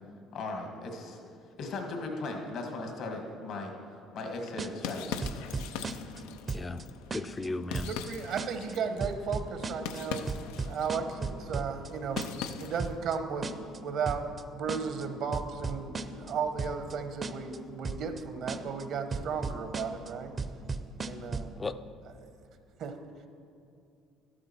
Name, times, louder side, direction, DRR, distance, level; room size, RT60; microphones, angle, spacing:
voice 1, 0.3-1.2 1.6-3.7 4.1-5.2, left 2 dB, 65° left, 2 dB, 1.7 m, -37 dB
sound 1, 4.4-13.0, left 7 dB, 85° left, 0.5 m, -42 dB
sound 2, 4.6-4.9 5.2-6.2 6.5-6.8 7.1-7.5 7.7-8.1 8.4-8.7 9.0-10.0 10.3-11.9 12.2-12.5 12.8-13.2 13.4-13.8 14.1-14.4 14.7-15.0 15.3-16.3 16.6-16.9 17.2-17.6 17.8-18.2 18.5-18.8 19.1-20.1 20.4-21.5, right 4 dB, 35° right, 0.6 m, -35 dB
voice 2, 6.5-6.8 7.1-7.9 21.6-21.8, left 3 dB, 25° left, 12 dB, 0.5 m, -35 dB
voice 3, 7.8-10.3 10.6-12.2 12.6-14.3 14.5-20.4 21.0-21.5 22.2-22.3 22.8-23.0, right 6 dB, 65° right, 7 dB, 1.1 m, -35 dB
12.0 x 12.0 x 4.4 m, 2.4 s
supercardioid pair, 85°, 0 cm